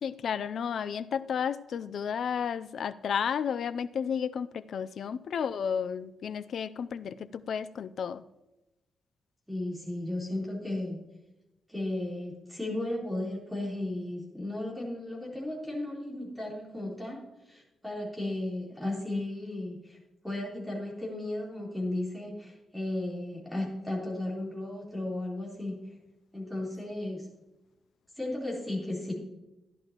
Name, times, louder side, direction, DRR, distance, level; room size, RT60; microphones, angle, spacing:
voice 1, 0.0-8.2, left 7 dB, 65° left, 14 dB, 0.4 m, -32 dB
voice 2, 9.5-11.0 11.7-17.2 17.5-20.0 20.2-25.8 26.3-27.3 28.2-29.1, left 1 dB, ahead, -4 dB, 3.7 m, -35 dB
13.5 x 11.0 x 3.0 m, 0.98 s
wide cardioid pair, 145°, 0 cm